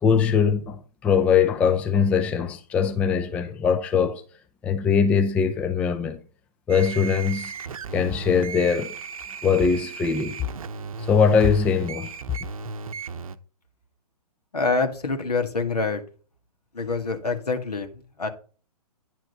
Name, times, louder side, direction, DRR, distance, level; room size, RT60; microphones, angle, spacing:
voice 1, 0.0-4.2 4.6-6.2 6.7-7.5 7.9-8.9 9.4-10.4 11.1-12.1, left 6 dB, 5° left, 0.3 m, -21 dB
sound 1, 6.7-13.4, right 5 dB, 60° right, 0.8 m, -36 dB
voice 2, 14.5-16.0 16.7-18.3, left 4 dB, 75° left, 1.9 m, -26 dB
10.0 x 4.7 x 5.4 m
figure-of-eight pair, 125°, 20 cm